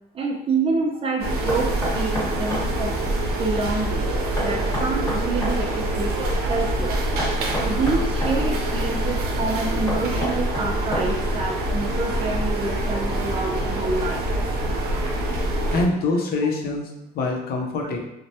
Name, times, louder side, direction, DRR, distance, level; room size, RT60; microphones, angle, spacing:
voice 1, 0.1-3.1 3.4-4.2 4.4-7.0 7.7-14.2, right 3 dB, 35° right, 0 dB, 0.6 m, -27 dB
sound 1, 1.2-15.8, right 1 dB, 70° right, 0.6 m, -25 dB
Knock, 1.5-2.7 4.4-5.6 7.2-8.4 9.9-11.3, left 1 dB, 15° left, 1.2 m, -29 dB
voice 2, 15.7-16.9 17.1-18.0, left 3 dB, 65° left, 1 dB, 0.6 m, -24 dB
3.2 x 2.1 x 2.7 m, 0.84 s
cardioid pair, 110°, 17 cm